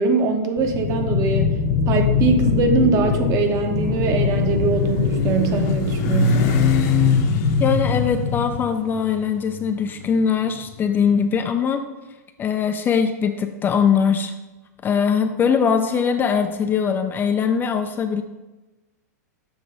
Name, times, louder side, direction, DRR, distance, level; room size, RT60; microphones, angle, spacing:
voice 1, 0.0-1.6 1.9-6.6, right 4 dB, 35° right, 5 dB, 0.9 m, -22 dB
sound 1, 0.6-8.6, left 6 dB, 80° left, 1.6 m, -23 dB
Motorcycle, 3.0-11.2, left 3 dB, 45° left, 0.9 m, -25 dB
voice 2, 7.6-11.8 12.4-14.3 14.8-18.2, left 6 dB, 20° left, 7 dB, 0.4 m, -21 dB
7.1 x 3.3 x 5.3 m, 1.1 s
hypercardioid pair, 110°, 9 cm